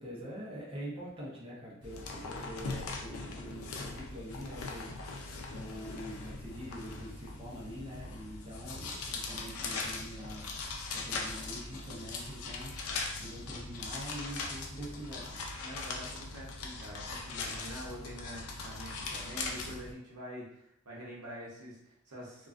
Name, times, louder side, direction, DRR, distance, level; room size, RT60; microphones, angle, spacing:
voice 1, 0.0-10.5 10.9-15.4, equal, 25° right, -6 dB, 0.6 m, -45 dB
sound 1, 1.8-19.9, left 3 dB, 70° left, 0.4 m, -40 dB
voice 2, 15.6-22.5, equal, 90° right, -4 dB, 0.8 m, -46 dB
2.4 x 2.2 x 2.4 m, 0.75 s
head